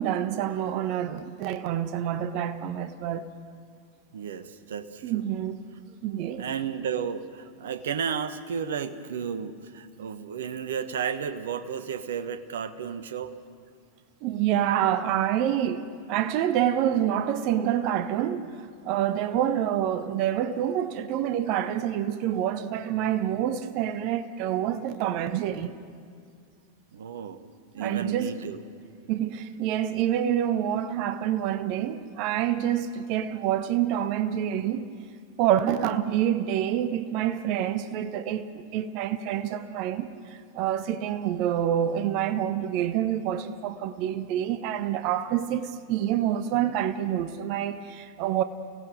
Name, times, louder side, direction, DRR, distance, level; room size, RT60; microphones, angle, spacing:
voice 1, 0.0-3.2 5.0-5.6 6.0-6.4 14.2-18.5 18.8-25.7 27.8-28.4 29.1-34.9 35.4-48.4, right 10 dB, 45° right, 1.1 m, -27 dB
voice 2, 4.1-5.2 6.4-13.3 26.9-27.5 27.7-28.6, right 7 dB, 60° right, 1.2 m, -33 dB
30.0 x 17.5 x 6.4 m
figure-of-eight pair, 90°, 0 cm